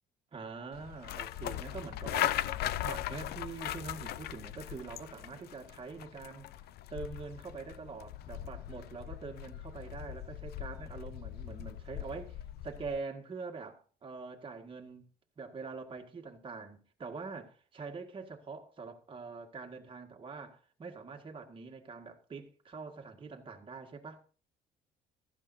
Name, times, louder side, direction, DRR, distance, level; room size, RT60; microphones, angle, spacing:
voice 1, 0.3-6.5 6.9-15.0 15.4-24.2, right 4 dB, 30° right, 1.9 m, -44 dB
sound 1, 0.7-13.0, left 13 dB, 70° left, 0.6 m, -39 dB
15.5 x 13.0 x 2.7 m
cardioid pair, 110°, 17 cm